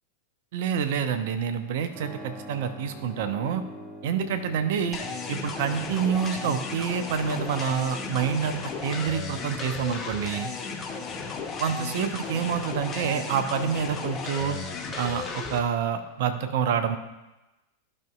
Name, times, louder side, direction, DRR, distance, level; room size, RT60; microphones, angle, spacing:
voice 1, 0.5-3.6 4.0-5.0 5.3-10.5 11.6-14.6 15.0-17.0, right 7 dB, 55° right, 9 dB, 0.7 m, -27 dB
Keyboard (musical), 1.9-14.3, equal, 20° right, 1.5 m, -47 dB
sound 1, 4.9-15.6, left 5 dB, 25° left, 0.9 m, -35 dB
12.0 x 5.3 x 2.3 m, 1.0 s
figure-of-eight pair, 90°, 0 cm